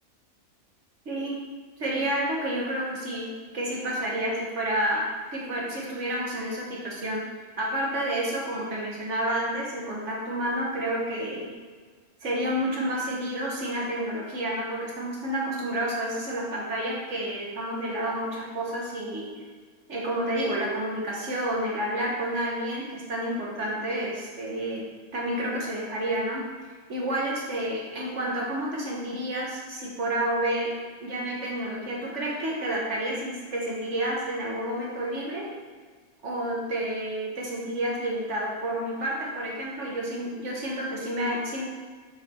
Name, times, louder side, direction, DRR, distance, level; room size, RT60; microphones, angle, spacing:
voice 1, 1.0-1.4 1.8-3.3 3.5-5.0 5.3-7.2 7.6-11.5 12.2-19.3 19.9-24.8 25.1-26.4 26.9-30.7 31.0-35.4 36.2-41.6, right 1 dB, 55° right, -4 dB, 1.5 m, -30 dB
5.8 x 4.8 x 4.4 m, 1.5 s
omnidirectional pair, 1.5 m